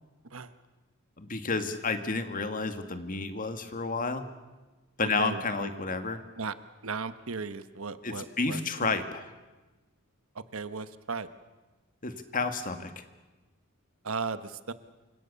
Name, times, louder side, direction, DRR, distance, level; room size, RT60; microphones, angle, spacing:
voice 1, 1.2-4.3 5.0-6.2 8.0-9.2 12.0-12.9, left 4 dB, 40° left, 8 dB, 2.1 m, -31 dB
voice 2, 5.0-5.7 6.4-6.5 6.8-9.0 10.3-11.3 14.0-14.7, right 4 dB, 85° right, 12 dB, 1.2 m, -36 dB
28.0 x 26.0 x 7.0 m, 1.2 s
head